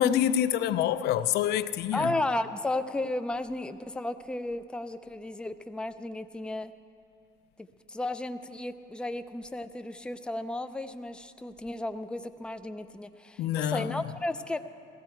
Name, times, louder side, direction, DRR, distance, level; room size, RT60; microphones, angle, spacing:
voice 1, 0.0-2.1 13.4-14.0, left 10 dB, 75° left, 0.5 m, -26 dB
voice 2, 1.9-6.7 7.6-14.6, left 2 dB, 5° left, 0.5 m, -34 dB
15.5 x 15.0 x 4.5 m
cardioid pair, 110°, 17 cm